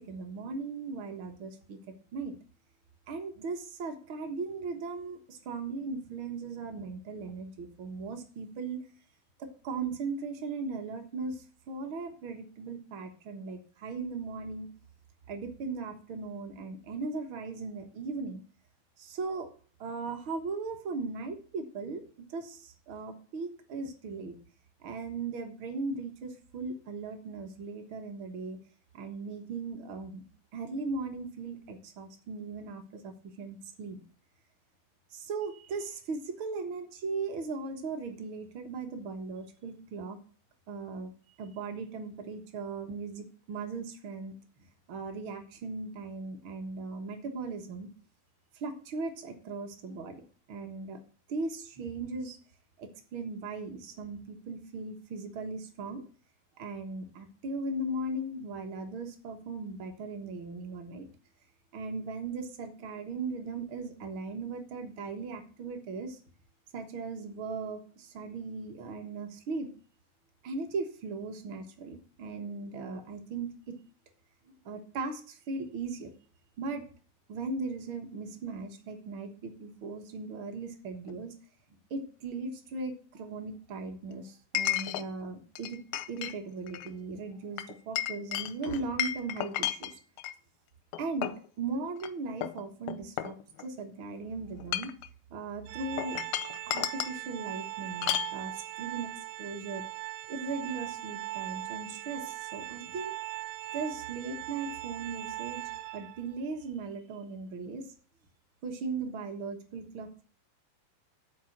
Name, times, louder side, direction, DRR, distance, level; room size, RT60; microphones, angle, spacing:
voice 1, 0.0-1.8 2.1-2.3 3.1-8.8 9.4-14.7 15.3-18.4 19.0-19.5 19.8-24.4 24.8-28.6 28.9-30.2 30.5-34.0 35.1-40.2 40.7-41.1 41.4-47.9 48.5-51.0 51.3-52.4 52.8-56.0 56.6-61.1 61.7-66.2 66.7-69.7 70.4-73.8 74.5-76.1 76.6-76.9 77.3-81.3 81.9-85.8 86.1-90.0 91.0-94.9 95.3-96.2 96.7-99.1 99.4-99.8 100.3-103.1 103.7-105.6 105.9-107.9 108.6-110.2, right 3 dB, 55° right, 5 dB, 1.4 m, -38 dB
Chink clink, 81.1-81.2 84.6-85.1 85.6-86.4 86.7-86.9 87.6-90.4 90.9-91.5 92.0-92.1 92.4-93.8 94.5-95.1 96.0-97.2 98.0-98.3, left 13 dB, 85° left, 2.5 m, -33 dB
Organ, 95.7-106.4, right 18 dB, 85° right, 2.6 m, -40 dB
11.0 x 4.4 x 7.2 m, 0.41 s
omnidirectional pair, 4.2 m